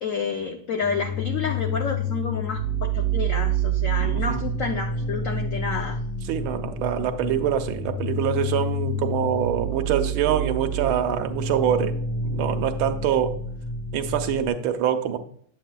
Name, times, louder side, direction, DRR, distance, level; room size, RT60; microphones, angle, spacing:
voice 1, 0.0-6.0, left 5 dB, 75° left, 4 dB, 0.7 m, -29 dB
sound 1, 0.8-14.5, right 2 dB, 10° right, 1.8 m, -28 dB
voice 2, 4.0-4.4 6.3-11.9 12.2-13.4 13.9-15.2, right 9 dB, 85° right, 7 dB, 1.6 m, -25 dB
8.6 x 8.2 x 2.3 m, 0.63 s
omnidirectional pair, 2.2 m